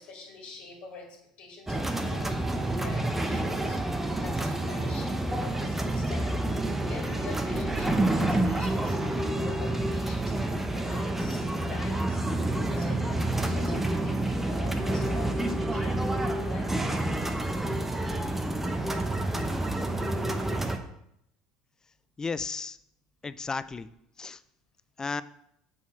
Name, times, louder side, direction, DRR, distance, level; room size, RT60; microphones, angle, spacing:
voice 1, 0.0-16.7, left 4 dB, 55° left, -1 dB, 2.2 m, -46 dB
sound 1, 1.7-20.8, right 1 dB, 10° right, 0.9 m, -28 dB
voice 2, 22.2-22.8 23.2-23.9 24.2-24.4 25.0-25.2, left 4 dB, 20° left, 15 dB, 0.4 m, -33 dB
7.1 x 4.2 x 5.8 m, 0.77 s
hypercardioid pair, 75°, 3 cm